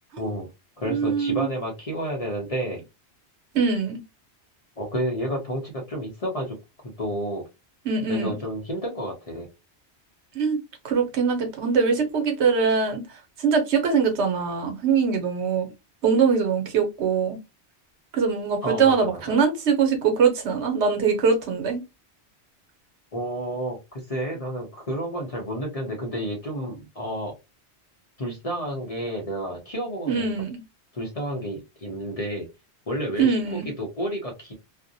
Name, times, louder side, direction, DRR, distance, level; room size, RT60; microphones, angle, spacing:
voice 1, 0.2-0.5 0.8-2.8 4.8-6.6 7.0-7.4 8.1-9.5 18.6-19.3 23.1-27.3 28.2-30.3 30.9-32.5 32.9-34.5, equal, 40° left, 0.7 m, -30 dB
voice 2, 0.9-1.5 3.5-4.0 7.8-8.3 10.3-10.6 10.8-13.0 13.4-15.7 16.0-17.4 18.1-21.8 30.1-30.6 33.2-33.7, right 5 dB, 80° right, 1.0 m, -22 dB
2.5 x 2.1 x 2.6 m
omnidirectional pair, 1.2 m